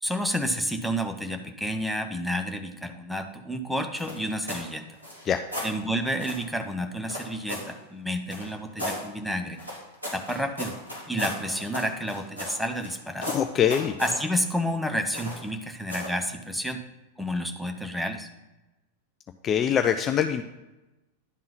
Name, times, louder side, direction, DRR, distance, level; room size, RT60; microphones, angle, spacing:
voice 1, 0.0-4.8 5.6-9.6 10.1-10.8 11.1-13.3 14.0-16.8 17.2-18.3, equal, ahead, 5 dB, 0.7 m, -30 dB
sound 1, 4.0-4.7 5.0-5.7 6.2-6.4 7.1-7.7 8.3-9.0 9.6-12.9 13.2-14.2 15.1-15.5 15.9-16.2, left 1 dB, 85° right, 2.8 m, -35 dB
voice 2, 13.2-13.9 19.4-20.4, left 9 dB, 25° left, 7 dB, 0.4 m, -23 dB
10.5 x 3.7 x 5.7 m, 1.0 s
figure-of-eight pair, 90°, 0 cm